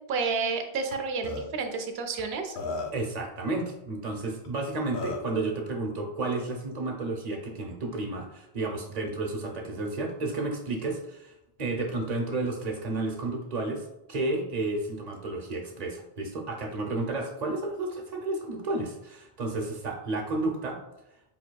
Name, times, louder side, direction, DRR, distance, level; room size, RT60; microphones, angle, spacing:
voice 1, 0.1-2.6, right 4 dB, 80° right, 5 dB, 0.8 m, -30 dB
Burping eructation, 0.9-1.0 1.2-1.4 2.2-2.3 2.6-3.1 4.4-4.5 4.9-5.3, left 3 dB, 85° left, 1.0 m, -34 dB
voice 2, 2.9-11.3 11.6-20.8, right 2 dB, 45° right, 1 dB, 0.7 m, -32 dB
5.0 x 2.7 x 2.2 m, 0.86 s
omnidirectional pair, 1.0 m